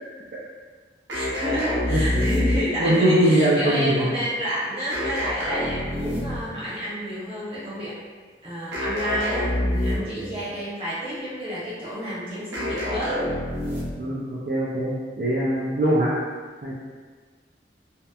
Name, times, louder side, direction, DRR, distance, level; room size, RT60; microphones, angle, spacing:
voice 1, 1.1-8.0 8.4-13.3, equal, 30° right, -11 dB, 0.9 m, -29 dB
sound 1, 1.1-2.9 4.9-6.6 8.7-10.2 12.5-14.1, left 1 dB, 90° right, 0.7 m, -27 dB
voice 2, 2.8-4.1 6.1-6.2 10.0-10.4 14.0-16.1 16.6-16.7, right 1 dB, 50° right, -8 dB, 0.4 m, -22 dB
2.8 x 2.0 x 2.3 m, 1.5 s
head